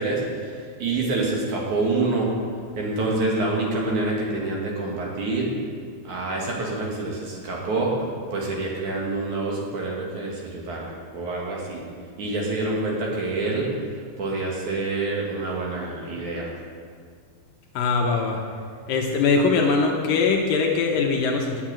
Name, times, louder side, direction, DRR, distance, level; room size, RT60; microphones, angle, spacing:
voice 1, 0.0-2.3 2.7-5.5 6.0-8.0 8.3-11.8 12.2-13.7 14.2-16.5, right 2 dB, 55° right, -3 dB, 2.9 m, -27 dB
voice 2, 17.7-18.4 18.9-21.6, left 4 dB, 70° left, 1 dB, 2.4 m, -21 dB
9.3 x 8.9 x 8.8 m, 2.1 s
omnidirectional pair, 4.5 m